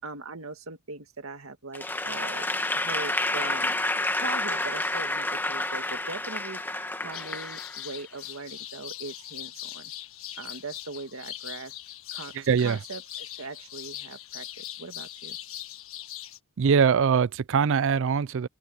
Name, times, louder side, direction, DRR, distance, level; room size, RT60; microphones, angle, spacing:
voice 1, 0.0-2.5 2.7-3.7 4.2-9.9 10.4-11.7 12.1-12.3 12.6-15.4, right 3 dB, 85° right, 2.1 m, -40 dB
Applause / Crowd, 1.7-8.0, left 2 dB, 10° left, 1.6 m, -29 dB
sound 1, 7.1-16.4, left 12 dB, 75° left, 1.5 m, -41 dB
voice 2, 12.3-12.8 16.6-18.5, right 6 dB, 65° right, 0.4 m, -22 dB
open air
head